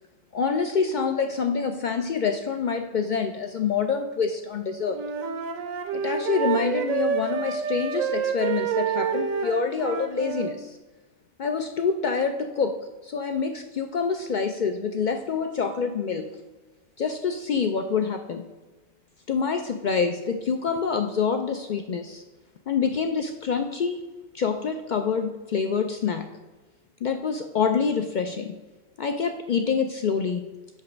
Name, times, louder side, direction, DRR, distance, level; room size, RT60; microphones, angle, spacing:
voice 1, 0.3-5.0 5.9-10.8 11.4-12.8 13.0-16.3 17.0-18.5 19.3-22.2 22.7-24.0 24.3-26.3 27.0-28.5 29.0-30.5, left 5 dB, 80° left, 6 dB, 0.4 m, -26 dB
Wind instrument woodwind instrument, 4.9-10.6, right 7 dB, 85° right, 1.1 m, -28 dB
8.3 x 3.1 x 6.1 m, 1.2 s
omnidirectional pair, 1.4 m